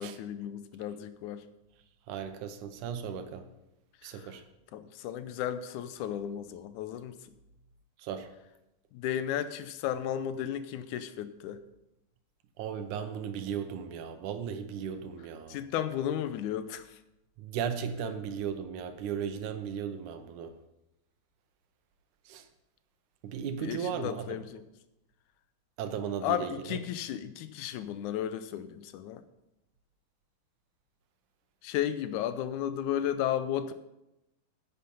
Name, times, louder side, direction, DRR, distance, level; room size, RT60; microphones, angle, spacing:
voice 1, 0.0-1.4 4.0-4.4 4.7-7.2 8.9-11.6 15.5-17.0 23.6-24.6 26.2-29.2 31.6-33.7, left 10 dB, 80° left, 12 dB, 1.9 m, -34 dB
voice 2, 2.1-3.5 4.0-4.4 8.0-8.3 12.6-15.6 17.4-20.5 22.3-22.5 23.2-24.4 25.8-26.8, right 7 dB, 75° right, 8 dB, 2.2 m, -36 dB
10.0 x 8.5 x 5.3 m, 0.91 s
omnidirectional pair, 3.8 m